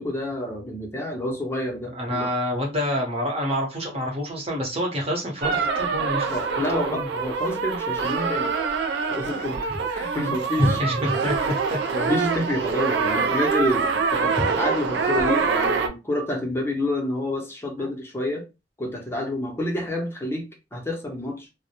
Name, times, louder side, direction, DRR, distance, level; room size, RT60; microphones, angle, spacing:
voice 1, 0.0-2.3 6.3-8.5 9.1-10.8 11.9-18.4 18.8-21.5, left 1 dB, 15° left, 0.6 m, -28 dB
voice 2, 1.9-6.3 6.7-7.1 10.6-11.3 11.7-11.8 14.4-14.5 17.8-17.9, equal, 35° right, 0.9 m, -26 dB
sound 1, 5.4-15.9, right 5 dB, 70° right, 0.4 m, -25 dB
2.1 x 2.0 x 2.9 m
head